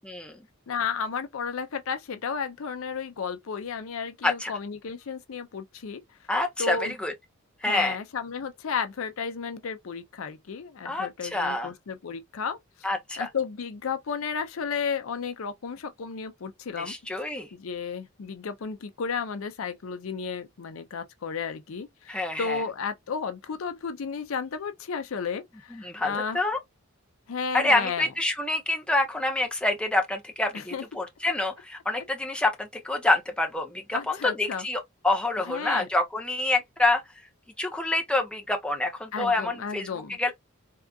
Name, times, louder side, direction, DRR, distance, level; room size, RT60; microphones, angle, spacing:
voice 1, 0.0-0.4 4.2-4.5 6.3-7.1 7.6-8.0 10.9-11.7 12.8-13.3 16.8-17.5 22.1-22.6 25.7-26.6 27.5-37.0 37.6-39.9 40.2-40.3, left 2 dB, 5° left, 0.5 m, -27 dB
voice 2, 0.7-6.0 6.6-7.0 7.6-12.6 13.2-16.9 17.5-26.4 27.3-28.1 30.5-31.0 33.9-34.7 35.5-35.9 39.1-40.2, left 6 dB, 70° left, 0.5 m, -33 dB
3.6 x 2.4 x 2.3 m
head